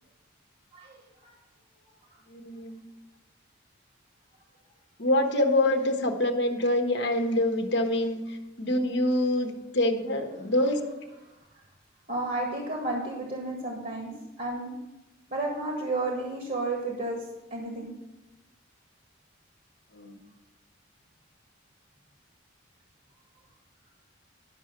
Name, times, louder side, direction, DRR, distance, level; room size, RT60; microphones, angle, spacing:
voice 1, 0.7-1.3 12.1-14.1 14.4-14.7 15.3-17.2 17.5-17.9, right 2 dB, 45° right, 0 dB, 1.7 m, -32 dB
voice 2, 2.3-2.8 5.0-10.8 19.9-20.2, left 1 dB, 60° left, 4 dB, 1.1 m, -26 dB
11.5 x 6.2 x 5.8 m, 0.99 s
head